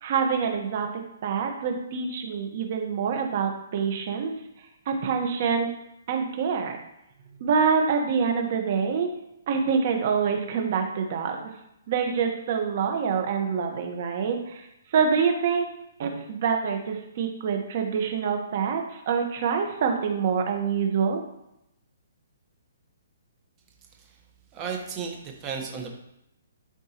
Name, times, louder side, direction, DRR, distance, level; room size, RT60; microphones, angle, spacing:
voice 1, 0.0-4.3 4.9-5.7 6.1-6.8 7.4-9.1 9.5-11.5 11.9-14.7 14.9-15.7 16.0-21.2, right 6 dB, 40° right, 4 dB, 1.3 m, -26 dB
voice 2, 24.5-25.9, right 6 dB, 20° right, 2 dB, 1.2 m, -34 dB
12.0 x 4.5 x 3.0 m, 0.83 s
hypercardioid pair, 165°, 0 cm